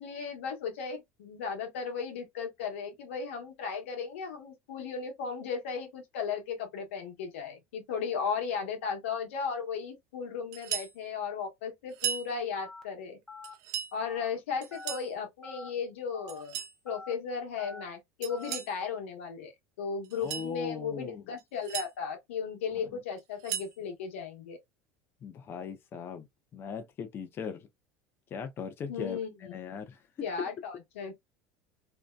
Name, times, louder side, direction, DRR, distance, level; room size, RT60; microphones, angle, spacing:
voice 1, 0.0-13.2 13.9-16.6 16.8-24.6 28.9-29.5 30.2-31.1, left 6 dB, 90° left, 0.9 m, -36 dB
sound 1, 10.5-11.0 11.9-12.3 13.4-13.9 14.6-15.1 16.3-16.8 18.2-18.7 20.0-20.5 21.4-21.9 23.2-23.8, right 9 dB, 65° right, 0.5 m, -36 dB
Telephone, 12.6-12.8 13.3-13.5 14.0-14.3 14.7-15.0 15.4-15.7 16.1-16.4 16.9-17.1 17.6-17.8 18.3-18.6, left 2 dB, 5° left, 0.7 m, -45 dB
voice 2, 20.2-21.2 22.8-22.9 25.2-26.3 26.5-27.7 28.3-30.0, left 6 dB, 35° left, 0.5 m, -39 dB
2.6 x 2.1 x 2.2 m
supercardioid pair, 105°, 7 cm